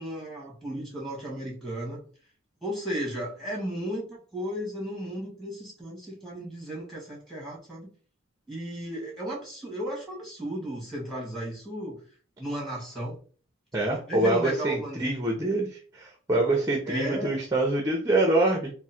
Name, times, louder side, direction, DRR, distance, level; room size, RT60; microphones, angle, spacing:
voice 1, 0.0-2.0 2.6-7.9 8.5-12.0 12.4-13.2 13.9-15.1 16.8-17.4, equal, ahead, -4 dB, 1.7 m, -34 dB
voice 2, 13.7-15.7 15.9-18.7, right 2 dB, 15° right, 1 dB, 0.6 m, -25 dB
3.7 x 2.1 x 4.2 m, 0.41 s
head